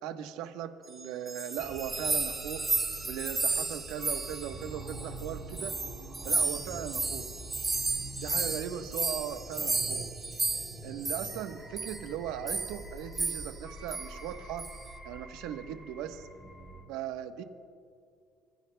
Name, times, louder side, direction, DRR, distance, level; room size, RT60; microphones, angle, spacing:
voice 1, 0.0-2.6 3.0-5.7 6.2-7.3 8.2-10.0 10.8-14.7 15.0-16.3 16.9-17.4, right 10 dB, 80° right, 7 dB, 1.1 m, -38 dB
sound 1, 1.0-5.3 5.5-11.5 11.8-12.0 12.5-12.8 13.1-13.6 13.9-14.1 14.6-14.9, right 3 dB, 15° right, 1.0 m, -33 dB
sound 2, 1.6-16.8, right 1 dB, 5° left, 3.5 m, -45 dB
30.0 x 15.5 x 2.3 m, 2.4 s
cardioid pair, 155°, 0 cm